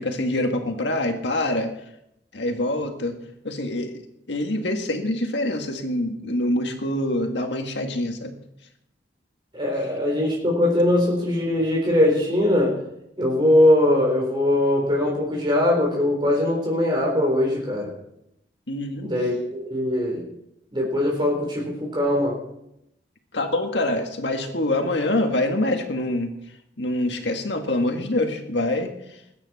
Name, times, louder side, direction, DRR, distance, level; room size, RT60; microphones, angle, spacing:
voice 1, 0.0-1.7 2.3-3.2 3.4-4.0 4.3-8.4 18.7-19.1 23.3-26.3 26.8-29.2, left 1 dB, 70° left, 4 dB, 1.9 m, -25 dB
voice 2, 9.5-12.7 13.2-17.9 19.0-20.2 20.7-22.4, left 1 dB, 25° right, -1 dB, 3.7 m, -21 dB
20.5 x 9.7 x 4.3 m, 0.81 s
head